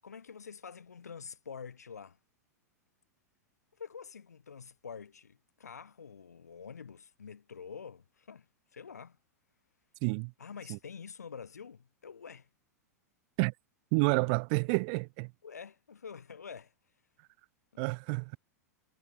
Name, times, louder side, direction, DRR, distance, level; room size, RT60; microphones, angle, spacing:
voice 1, 0.0-2.2 3.8-9.2 10.4-12.5 15.4-16.7 17.7-17.9, left 6 dB, 70° left, 7.5 m, -47 dB
voice 2, 10.0-10.3 10.7-10.8 13.4-13.5 13.9-15.3 17.8-18.4, right 37 dB, 40° right, 0.4 m, -29 dB
figure-of-eight pair, 95°, 9 cm